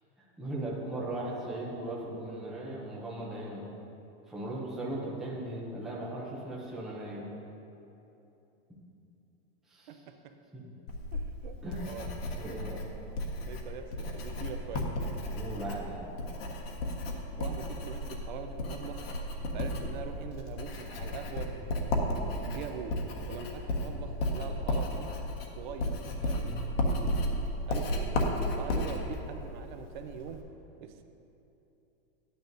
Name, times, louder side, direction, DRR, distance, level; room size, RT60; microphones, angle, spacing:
voice 1, 0.4-3.7 4.3-7.3 9.7-10.0 10.5-10.8 11.6-11.9 12.4-12.8 15.3-16.0 26.4-26.7, right 1 dB, ahead, -5 dB, 0.5 m, -38 dB
voice 2, 9.9-10.3 11.1-12.1 13.2-14.9 17.4-19.1 19.5-21.6 22.3-23.0 23.3-25.1 25.6-27.0 27.7-28.2 28.6-30.4 30.8-31.0, right 6 dB, 55° right, 7 dB, 0.6 m, -43 dB
Writing, 10.9-30.4, left 1 dB, 75° left, 1.3 m, -34 dB
11.5 x 9.5 x 2.6 m, 2.9 s
supercardioid pair, 175°, 30 cm